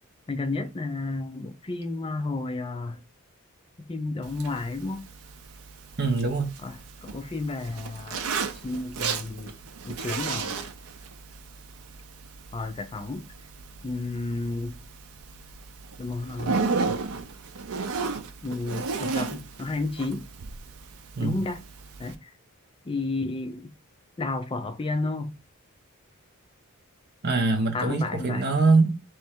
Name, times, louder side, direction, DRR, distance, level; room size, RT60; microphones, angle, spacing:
voice 1, 0.3-3.0 3.8-5.1 6.6-8.2 8.6-9.5 9.8-10.7 12.5-13.3 13.8-14.8 16.0-16.6 18.4-20.3 21.2-21.7 22.0-22.3 22.9-23.7 24.2-25.4 27.7-28.4, left 3 dB, 25° left, 0.4 m, -32 dB
Zipper (clothing), 4.2-22.2, right 4 dB, 70° right, 0.5 m, -35 dB
voice 2, 6.0-6.6 21.1-21.4 27.2-29.0, right 3 dB, 45° right, 0.9 m, -23 dB
3.3 x 3.1 x 4.4 m
head